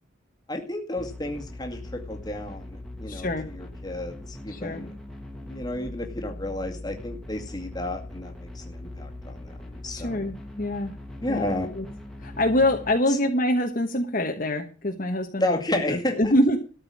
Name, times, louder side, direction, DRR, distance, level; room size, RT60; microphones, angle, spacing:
voice 1, 0.5-4.9 5.4-10.3 11.2-11.7 13.1-13.2 15.4-16.3, left 1 dB, 20° left, 2 dB, 2.2 m, -32 dB
sound 1, 1.0-13.0, left 1 dB, ahead, 2.2 m, -40 dB
voice 2, 3.1-3.5 4.5-4.8 9.9-10.9 11.3-11.8 12.2-16.6, left 1 dB, 45° left, 3 dB, 1.3 m, -25 dB
13.5 x 5.5 x 8.6 m, 0.36 s
head